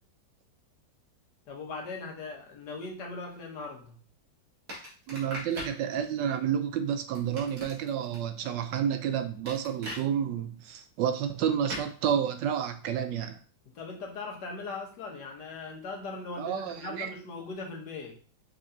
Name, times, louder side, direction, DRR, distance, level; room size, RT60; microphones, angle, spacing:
voice 1, 1.5-4.0 13.7-18.2, left 3 dB, 65° left, 1.6 m, -39 dB
sound 1, 4.7-5.8 7.2-8.2 9.5-10.0 11.7-11.9, equal, 50° right, 2.0 m, -39 dB
voice 2, 5.1-13.4 16.4-17.1, right 8 dB, 80° right, 1.2 m, -30 dB
5.5 x 3.4 x 2.7 m
omnidirectional pair, 2.0 m